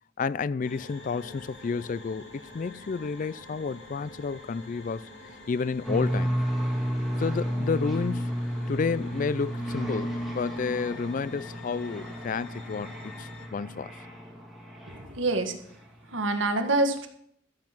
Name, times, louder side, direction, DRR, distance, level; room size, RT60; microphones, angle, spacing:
voice 1, 0.2-5.0 5.5-6.3 7.2-8.4 8.7-13.9, left 5 dB, 45° left, 0.3 m, -31 dB
sound 1, 0.6-13.5, left 1 dB, 70° left, 2.7 m, -48 dB
sound 2, 5.8-15.4, equal, ahead, 2.5 m, -32 dB
voice 2, 14.9-15.6 16.1-17.1, right 2 dB, 90° right, 1.7 m, -26 dB
13.5 x 7.5 x 6.1 m
head